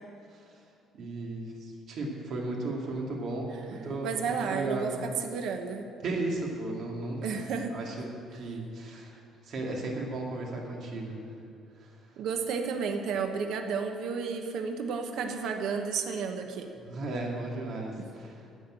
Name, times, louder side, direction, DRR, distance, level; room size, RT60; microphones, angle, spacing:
voice 1, 0.9-5.0 6.0-7.4 7.7-9.1 9.4-11.2 11.8-11.9 16.8-18.4, right 2 dB, 50° right, -1 dB, 2.1 m, -35 dB
voice 2, 4.0-5.9 7.2-7.7 12.2-16.7, right 5 dB, 65° right, 5 dB, 1.0 m, -32 dB
10.0 x 7.2 x 8.9 m, 2.5 s
cardioid pair, 160°, 0 cm